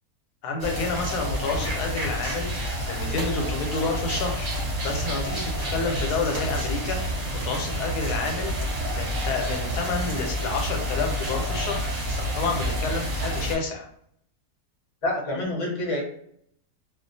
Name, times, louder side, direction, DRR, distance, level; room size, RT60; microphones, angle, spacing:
voice 1, 0.4-4.5 4.8-13.9, left 4 dB, 90° left, 3 dB, 1.2 m, -30 dB
sound 1, 0.6-13.5, equal, 40° right, 0.8 m, -29 dB
voice 2, 15.0-16.0, left 1 dB, 35° left, -2 dB, 0.5 m, -27 dB
2.4 x 2.3 x 2.6 m, 0.67 s
omnidirectional pair, 1.7 m